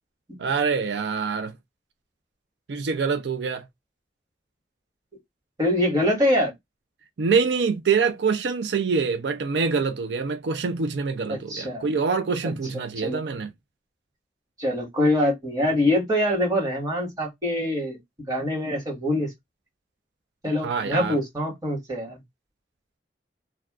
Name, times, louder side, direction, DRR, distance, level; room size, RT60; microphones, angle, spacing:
voice 1, 0.4-1.5 2.7-3.6 7.2-13.5 20.6-21.2, right 5 dB, 85° right, 0.5 m, -25 dB
voice 2, 5.6-6.5 11.3-11.9 12.4-12.6 13.0-13.2 14.6-19.3 20.4-22.2, left 1 dB, 20° right, 1.4 m, -24 dB
2.4 x 2.3 x 3.4 m
head